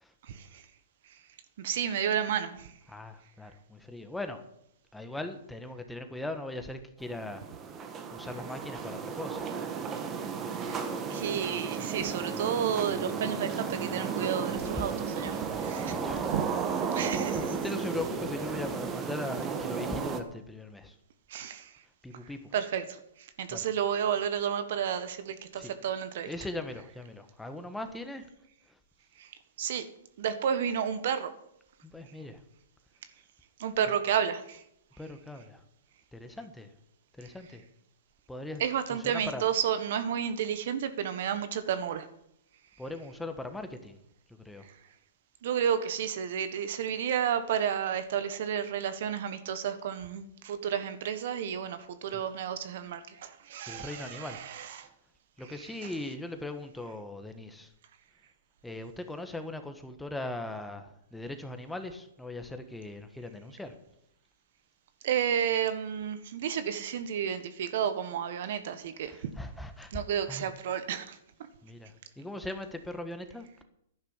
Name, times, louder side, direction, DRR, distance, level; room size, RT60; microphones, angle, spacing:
voice 1, 0.2-0.6 1.6-2.7 10.6-10.8 11.1-16.0 16.3-16.4 16.9-17.5 21.3-21.7 22.5-26.3 29.2-29.3 29.6-29.9 30.2-31.3 33.6-34.6 38.6-42.1 45.4-54.9 55.4-55.9 65.0-69.3 69.9-71.2, right 8 dB, 60° right, 11 dB, 1.5 m, -31 dB
voice 2, 2.9-4.4 4.9-7.4 8.1-9.5 14.5-14.9 15.6-20.9 22.0-22.5 23.5-23.7 25.5-25.7 26.2-28.3 31.8-32.4 33.8-33.9 35.0-35.6 36.1-36.7 37.2-37.6 38.3-39.4 42.8-44.0 44.3-44.7 52.1-52.2 53.7-54.4 55.4-57.7 58.6-63.8 69.1-70.6 71.6-73.6, left 2 dB, 5° left, 7 dB, 1.5 m, -40 dB
sound 1, 7.0-20.2, right 5 dB, 25° right, 1.6 m, -34 dB
11.5 x 10.5 x 7.3 m, 0.76 s
hypercardioid pair, 125°, 0 cm